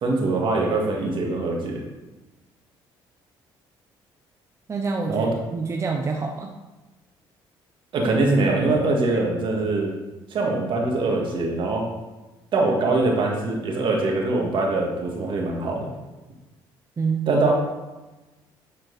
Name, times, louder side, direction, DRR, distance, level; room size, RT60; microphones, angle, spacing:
voice 1, 0.0-1.8 5.1-5.3 7.9-9.9 10.3-11.8 12.5-15.9 17.3-17.5, right 2 dB, 60° right, 0 dB, 1.9 m, -23 dB
voice 2, 4.7-6.5 17.0-17.3, right 4 dB, 30° right, 2 dB, 0.7 m, -27 dB
9.9 x 4.5 x 4.1 m, 1.1 s
cardioid pair, 85°, 10 cm